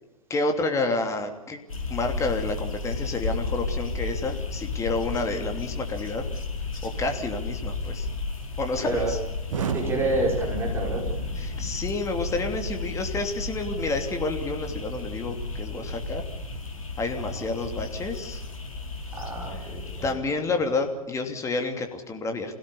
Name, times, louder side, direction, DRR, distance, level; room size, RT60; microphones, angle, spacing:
voice 1, 0.3-1.6 1.9-6.3 6.8-8.1 8.6-9.2 11.4-16.2 17.0-18.4 20.0-22.5, left 3 dB, 15° left, 4 dB, 2.9 m, -29 dB
sound 1, 1.7-20.1, left 3 dB, 65° left, 4.8 m, -33 dB
voice 2, 8.8-9.1 9.5-11.2 17.1-17.5 19.1-20.2, right 2 dB, 15° right, -1 dB, 5.4 m, -29 dB
Explosion, 9.5-19.4, right 7 dB, 60° right, 1.8 m, -38 dB
27.5 x 17.0 x 7.0 m, 1.0 s
figure-of-eight pair, 105°, 18 cm